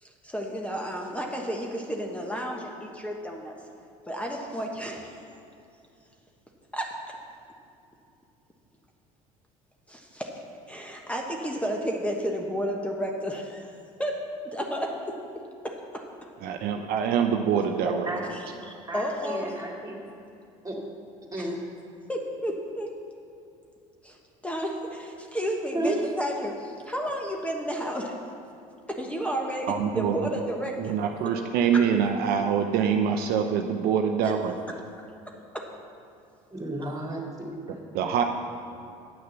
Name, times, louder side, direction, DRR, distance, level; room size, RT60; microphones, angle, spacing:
voice 1, 0.0-3.5 4.1-5.2 6.7-7.0 9.9-10.3 10.7-13.7 14.0-16.0 18.3-19.6 21.4-21.5 22.1-22.9 24.0-24.2 24.4-28.1 28.9-31.0 31.7-31.8 34.2-34.3 35.5-35.7, equal, 5° left, 0 dB, 1.2 m, -32 dB
voice 2, 16.4-18.1 29.7-30.2 30.8-34.5 37.7-38.2, right 7 dB, 60° right, 4 dB, 0.7 m, -25 dB
voice 3, 18.9-20.0 20.6-20.8 21.3-21.6 25.7-26.0 36.5-37.8, right 1 dB, 20° right, -1 dB, 2.5 m, -32 dB
9.2 x 6.6 x 6.8 m, 2.6 s
hypercardioid pair, 70°, 17 cm